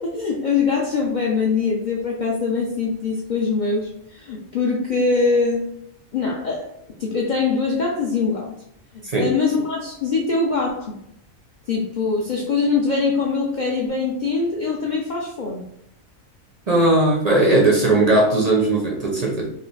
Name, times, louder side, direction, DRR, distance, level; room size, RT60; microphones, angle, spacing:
voice 1, 0.0-5.6 6.1-6.7 7.0-8.5 9.2-11.0 11.7-15.6, left 4 dB, 80° left, -1 dB, 0.4 m, -22 dB
voice 2, 16.7-19.5, right 2 dB, 55° right, -1 dB, 0.4 m, -18 dB
3.1 x 2.5 x 3.1 m, 0.75 s
omnidirectional pair, 1.4 m